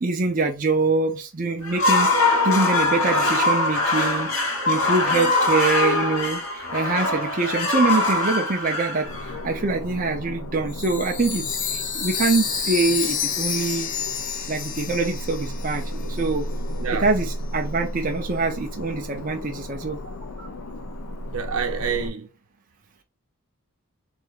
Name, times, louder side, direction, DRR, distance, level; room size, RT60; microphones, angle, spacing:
voice 1, 0.0-2.1 2.4-6.4 6.7-9.1 9.4-13.9 14.5-16.5 16.9-20.0, right 3 dB, 40° right, 0.6 m, -24 dB
sound 1, 1.6-9.7, left 2 dB, 70° left, 1.3 m, -22 dB
sound 2, 9.0-22.1, equal, 85° left, 0.7 m, -34 dB
Chime, 10.7-16.2, left 7 dB, 35° left, 0.6 m, -29 dB
voice 2, 16.8-17.1 20.2-20.5 21.3-22.3, right 6 dB, 75° right, 0.8 m, -28 dB
3.7 x 3.4 x 3.7 m
head